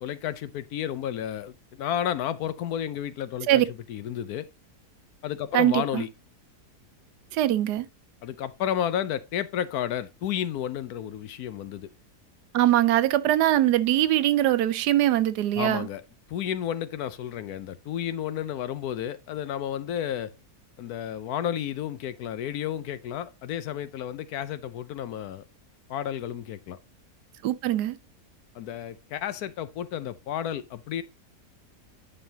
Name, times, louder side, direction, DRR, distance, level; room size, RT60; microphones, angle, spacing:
voice 1, 0.0-3.6 3.9-4.5 5.2-6.1 8.2-11.9 15.5-16.0 16.3-20.3 20.8-25.4 25.9-26.8 28.5-31.0, left 10 dB, 70° left, 1.1 m, -32 dB
voice 2, 5.5-6.0 7.3-7.9 12.5-15.9 27.4-28.0, right 13 dB, 80° right, 1.2 m, -22 dB
10.0 x 5.5 x 2.7 m
omnidirectional pair, 1.7 m